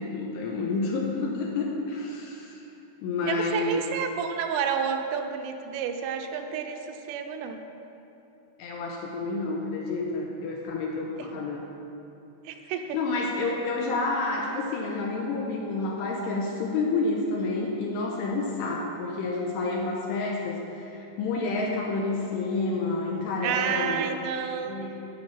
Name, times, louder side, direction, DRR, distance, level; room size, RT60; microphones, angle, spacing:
voice 1, 0.0-2.6 3.0-3.8 8.6-11.7 12.9-24.1 24.6-25.0, left 3 dB, 75° left, -1 dB, 2.7 m, -29 dB
voice 2, 3.3-7.6 11.2-11.3 12.5-13.0 23.4-24.9, right 7 dB, 85° right, 5 dB, 3.2 m, -30 dB
11.0 x 5.6 x 8.6 m, 2.9 s
omnidirectional pair, 5.7 m